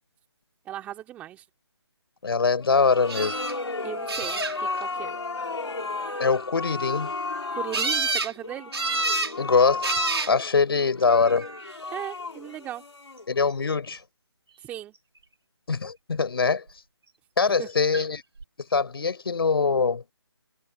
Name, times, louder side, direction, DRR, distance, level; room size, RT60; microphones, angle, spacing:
voice 1, 0.6-1.4 3.8-5.2 7.5-8.7 11.9-12.8 14.6-14.9 17.6-17.7, right 12 dB, 10° right, 2.6 m, -37 dB
voice 2, 2.2-3.4 6.2-7.2 9.4-10.0 10.3-11.5 13.3-14.0 15.7-16.6 17.4-18.2 18.7-20.0, left 4 dB, 55° left, 6.3 m, -23 dB
sound 1, 2.6-13.6, left 3 dB, 75° left, 4.1 m, -34 dB
sound 2, 3.1-3.5 4.1-4.8 7.7-8.3 8.7-9.3 9.8-10.3 11.2-11.7 17.9-18.0 18.4-18.5, right 3 dB, 65° right, 3.9 m, -27 dB
figure-of-eight pair, 155°, 14 cm